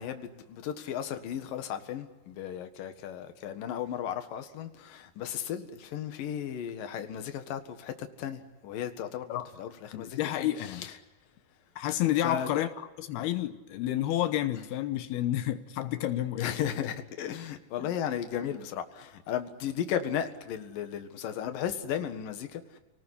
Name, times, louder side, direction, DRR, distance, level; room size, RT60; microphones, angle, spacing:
voice 1, 0.0-10.9 12.2-12.5 16.4-22.8, left 9 dB, 65° left, 3.2 m, -35 dB
voice 2, 9.9-10.9 11.8-12.7 13.0-16.5 17.8-17.9, left 13 dB, 90° left, 3.0 m, -30 dB
29.0 x 19.5 x 9.8 m
omnidirectional pair, 4.4 m